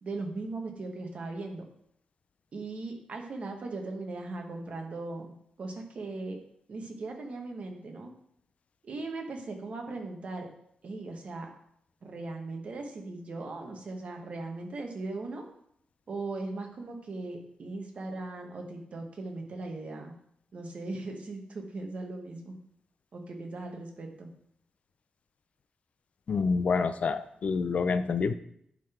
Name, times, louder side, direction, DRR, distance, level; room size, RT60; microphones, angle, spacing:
voice 1, 0.0-1.6 2.5-5.3 5.6-6.4 6.7-8.1 8.8-10.5 10.8-11.5 12.0-15.4 16.1-20.1 20.5-22.5 23.1-24.3, right 3 dB, 55° right, 2 dB, 1.4 m, -38 dB
voice 2, 26.3-28.3, left 5 dB, 55° left, 12 dB, 0.4 m, -27 dB
10.5 x 4.0 x 4.4 m, 0.70 s
wide cardioid pair, 125°, 3 cm